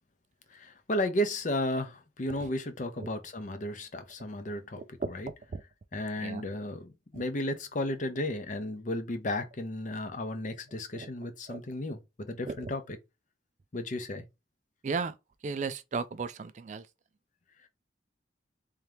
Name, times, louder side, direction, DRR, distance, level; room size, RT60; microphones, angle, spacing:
voice 1, 0.5-5.3 5.9-13.0 13.7-14.2, left 1 dB, 45° left, 0.7 m, -34 dB
voice 2, 4.8-5.1 5.5-5.6 6.2-6.5 10.9-11.6 12.5-12.7 14.8-15.1 15.4-16.8, right 4 dB, 45° right, 0.4 m, -35 dB
3.5 x 2.9 x 3.3 m
head